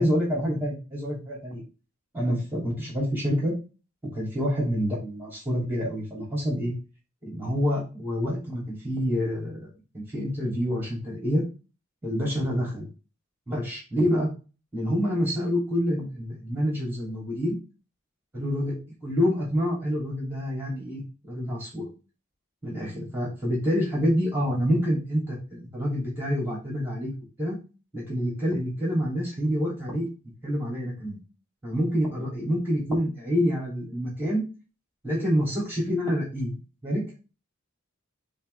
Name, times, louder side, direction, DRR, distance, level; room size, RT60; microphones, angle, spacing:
voice 1, 0.0-1.6 2.1-3.5 4.1-6.7 7.2-9.7 9.9-11.4 12.0-12.9 13.5-14.3 14.7-17.6 18.3-21.9 22.6-27.1 27.4-27.6 27.9-30.1 30.4-31.2 31.6-34.4 35.0-37.0, equal, 10° right, -4 dB, 2.8 m, -27 dB
7.2 x 4.0 x 3.3 m, 0.32 s
head